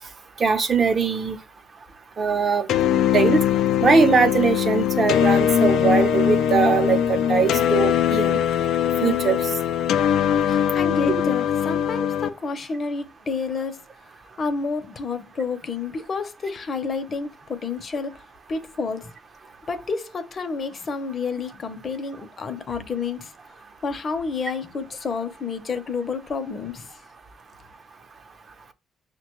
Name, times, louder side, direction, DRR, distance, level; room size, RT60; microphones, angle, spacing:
voice 1, 0.4-1.4 2.2-2.7 3.1-3.4 3.8-8.4 9.0-9.4 11.1-11.2, right 5 dB, 45° right, 0.7 m, -21 dB
sound 1, 2.7-12.3, left 9 dB, 80° left, 0.3 m, -21 dB
voice 2, 10.5-13.8 14.4-18.1 18.5-19.1 19.7-23.3 23.8-26.9, left 4 dB, 45° left, 0.6 m, -29 dB
5.8 x 2.2 x 3.0 m
cardioid pair, 90°, 0 cm